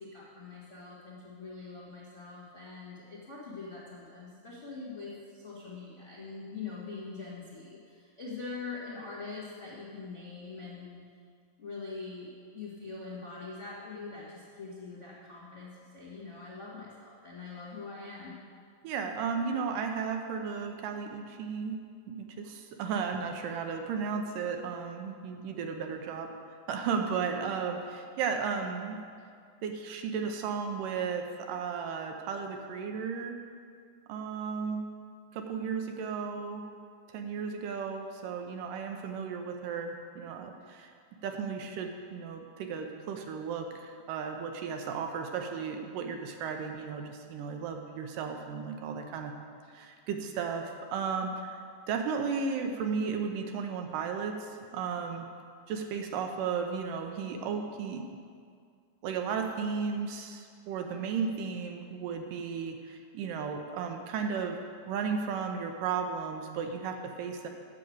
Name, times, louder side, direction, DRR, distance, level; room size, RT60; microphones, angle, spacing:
voice 1, 0.0-11.0 11.6-18.4, left 4 dB, 45° left, -8 dB, 0.9 m, -43 dB
voice 2, 18.8-21.8 22.1-26.3 26.7-29.0 29.6-33.4 34.1-34.8 35.3-36.6 37.1-40.9 41.2-49.3 49.7-51.6 51.9-55.3 55.7-58.2 59.0-67.5, right 6 dB, 75° right, 4 dB, 2.2 m, -34 dB
8.6 x 6.5 x 7.8 m, 2.2 s
omnidirectional pair, 4.1 m